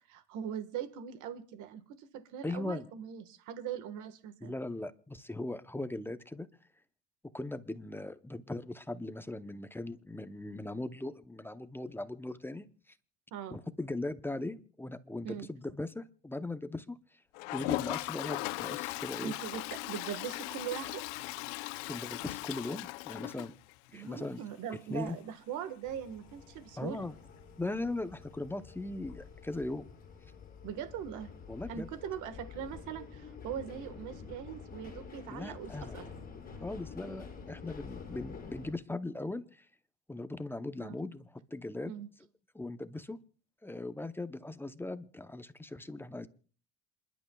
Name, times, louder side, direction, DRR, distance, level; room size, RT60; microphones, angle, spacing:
voice 1, 0.1-4.5 13.3-13.6 15.2-15.5 19.2-21.0 23.9-27.0 30.6-31.3 31.7-36.0 40.8-40.9 41.9-42.1, right 9 dB, 60° right, 9 dB, 1.6 m, -41 dB
voice 2, 2.4-2.9 4.4-6.5 7.3-12.7 13.5-17.0 17.5-19.3 21.9-23.5 23.9-24.4 24.9-25.2 26.8-27.1 27.6-29.9 31.5-31.9 35.3-36.0 36.6-39.7 40.1-41.9 42.5-43.2 43.6-46.3, left 2 dB, 5° left, 11 dB, 0.7 m, -39 dB
Toilet flush, 17.3-24.1 24.4-24.5 24.7-24.8 25.0-25.1 27.7-27.8 29.1-29.2, left 21 dB, 85° left, 0.7 m, -38 dB
sound 1, 25.8-38.7, left 5 dB, 25° left, 6.4 m, -48 dB
28.0 x 11.5 x 2.3 m, 0.41 s
cardioid pair, 120°, 33 cm